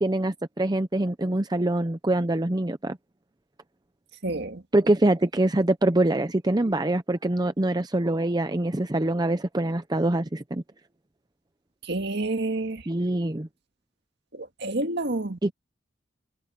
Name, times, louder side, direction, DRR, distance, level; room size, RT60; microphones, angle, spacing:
voice 1, 0.0-3.0 4.7-10.6 12.9-13.5 15.4-15.5, right 1 dB, 20° right, 0.7 m, -24 dB
voice 2, 4.2-4.6 11.8-12.8 14.3-15.5, right 2 dB, 55° right, 2.0 m, -29 dB
head